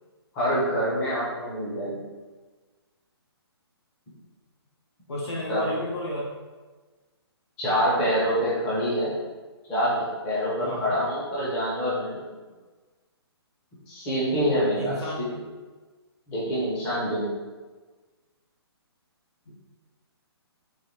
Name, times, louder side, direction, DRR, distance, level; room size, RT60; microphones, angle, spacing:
voice 1, 0.3-1.9 5.5-5.7 7.6-9.1 9.7-12.2 13.9-15.3 16.3-17.3, equal, 10° left, -9 dB, 0.5 m, -26 dB
voice 2, 5.1-6.3 10.6-11.0 14.7-15.3 19.4-19.5, left 1 dB, 85° left, -3 dB, 1.5 m, -32 dB
3.9 x 2.9 x 3.1 m, 1.3 s
hypercardioid pair, 175°, 14 cm